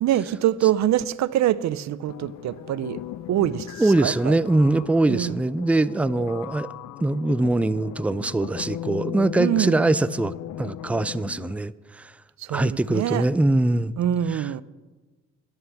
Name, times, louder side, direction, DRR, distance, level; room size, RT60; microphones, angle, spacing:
voice 1, 0.0-3.0 3.3-4.4 5.1-5.4 9.4-9.7 12.4-13.3 14.0-14.6, right 12 dB, 65° right, 0.6 m, -24 dB
sound 1, 2.1-11.6, left 13 dB, 70° left, 0.6 m, -37 dB
voice 2, 3.8-6.7 7.0-12.1 12.5-13.9 14.3-14.6, right 2 dB, 5° right, 0.4 m, -23 dB
11.0 x 11.0 x 7.0 m
cardioid pair, 90°, 30 cm